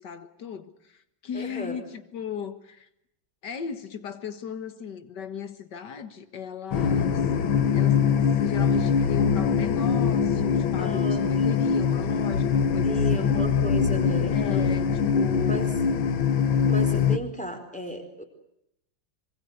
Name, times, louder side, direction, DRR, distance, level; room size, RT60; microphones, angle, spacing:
voice 1, 0.0-2.9 3.4-7.2 7.7-13.4 14.3-15.8, left 7 dB, 60° left, 2.2 m, -37 dB
voice 2, 1.3-1.8 10.8-11.5 12.8-14.9 15.5-15.7 16.7-18.2, left 1 dB, 5° left, 4.3 m, -35 dB
sound 1, 6.7-17.2, left 6 dB, 80° left, 2.0 m, -23 dB
25.5 x 23.0 x 8.2 m
omnidirectional pair, 2.1 m